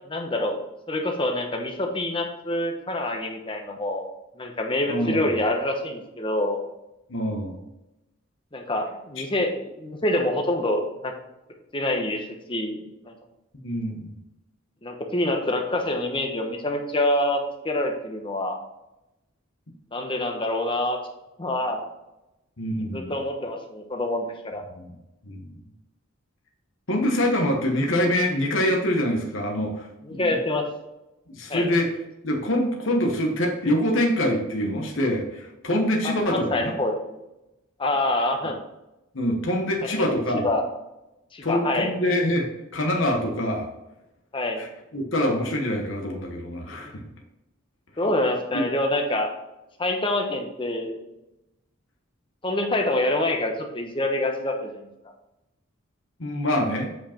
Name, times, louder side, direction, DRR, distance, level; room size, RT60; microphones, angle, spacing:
voice 1, 0.1-0.6 0.9-4.1 4.4-6.6 8.5-11.1 11.7-13.1 14.8-18.6 19.9-21.0 21.4-21.8 22.9-24.6 30.0-30.7 31.5-31.7 36.0-37.2 37.8-38.6 39.8-40.6 41.3-41.9 44.3-44.6 48.0-49.3 49.8-51.0 52.4-54.8, left 1 dB, 25° left, 3 dB, 1.1 m, -26 dB
voice 2, 4.9-5.3 7.1-7.6 9.2-9.3 13.6-14.1 22.6-23.1 24.8-24.9 25.3-25.4 26.9-30.4 31.3-31.9 32.2-36.7 39.1-40.5 41.4-42.5 42.7-43.7 44.6-47.0 48.5-48.7 56.2-56.9, left 1 dB, 65° left, 1 dB, 1.2 m, -25 dB
8.1 x 5.0 x 4.4 m, 0.94 s
head